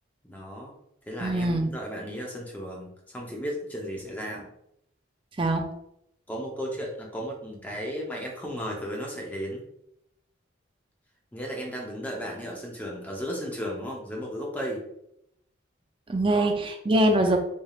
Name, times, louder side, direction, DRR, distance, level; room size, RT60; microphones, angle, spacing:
voice 1, 0.2-0.7 1.1-4.5 6.3-9.6 11.3-14.8 16.3-16.5, equal, 10° left, -1 dB, 0.7 m, -35 dB
voice 2, 1.2-1.7 5.4-5.6 16.1-17.4, right 1 dB, 25° right, 4 dB, 0.4 m, -23 dB
4.2 x 3.3 x 2.4 m, 0.78 s
head